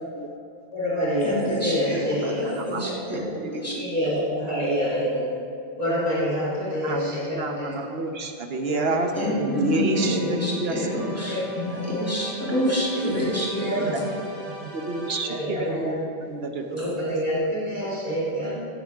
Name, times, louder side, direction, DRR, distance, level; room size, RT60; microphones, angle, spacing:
voice 1, 0.7-2.9 3.7-5.4 5.8-7.8 8.7-8.9 9.6-9.8 11.2-11.5 11.8-12.1 13.5-13.9 15.3-16.0 16.7-18.5, equal, 40° right, -7 dB, 2.9 m, -27 dB
voice 2, 1.2-2.0 2.7-3.2 3.6-3.7 9.2-14.0 16.8-16.9, equal, 15° left, -6 dB, 2.8 m, -27 dB
voice 3, 3.1-3.9 6.8-11.3 13.8-14.1 14.4-16.9, right 2 dB, 70° right, 5 dB, 1.2 m, -30 dB
sound 1, 8.9-15.7, equal, 55° right, 2.6 m, -40 dB
15.5 x 10.5 x 3.6 m, 2.5 s
omnidirectional pair, 1.1 m